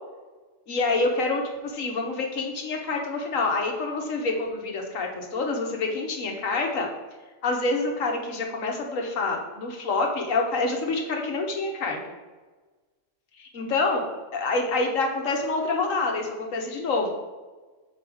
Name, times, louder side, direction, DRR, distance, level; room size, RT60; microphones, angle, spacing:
voice 1, 0.7-6.9 7.4-12.0 13.4-14.0 14.3-17.1, left 3 dB, 90° left, 2 dB, 1.5 m, -27 dB
6.2 x 4.8 x 4.8 m, 1.3 s
omnidirectional pair, 1.3 m